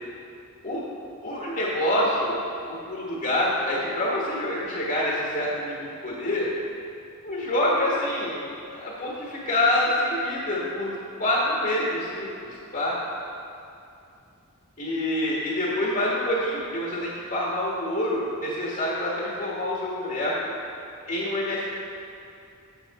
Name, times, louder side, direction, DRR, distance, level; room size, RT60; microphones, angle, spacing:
voice 1, 1.2-2.4 2.7-6.5 7.2-8.5 8.8-12.3 12.7-12.9 14.8-20.5 21.1-21.7, left 1 dB, 40° left, -6 dB, 1.4 m, -26 dB
7.9 x 7.4 x 4.1 m, 2.6 s
head